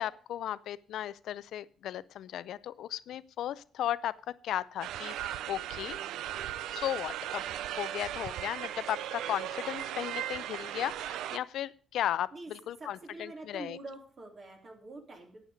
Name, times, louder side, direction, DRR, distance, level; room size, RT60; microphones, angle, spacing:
voice 1, 0.0-4.1 4.4-6.0 6.7-7.4 7.7-13.8, left 11 dB, 75° left, 18 dB, 0.4 m, -35 dB
sound 1, 4.8-11.4, right 12 dB, 85° right, 0.4 m, -37 dB
voice 2, 12.8-15.5, right 2 dB, 45° right, 2 dB, 3.1 m, -46 dB
11.5 x 8.5 x 5.1 m, 0.44 s
cardioid pair, 90°, 0 cm